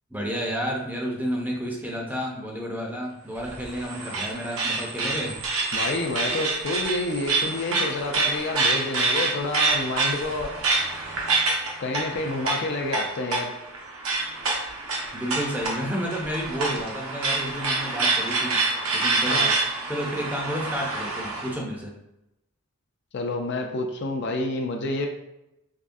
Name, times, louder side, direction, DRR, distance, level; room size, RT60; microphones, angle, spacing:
voice 1, 0.1-5.4 15.1-18.6 18.9-19.4 19.9-21.9, equal, 10° right, -1 dB, 0.5 m, -31 dB
sound 1, 3.4-21.5, right 3 dB, 80° right, 0.8 m, -27 dB
voice 2, 5.7-10.5 11.8-13.5 19.3-19.5 23.1-25.1, left 2 dB, 55° left, 3 dB, 0.4 m, -28 dB
3.6 x 3.1 x 2.6 m, 0.88 s
head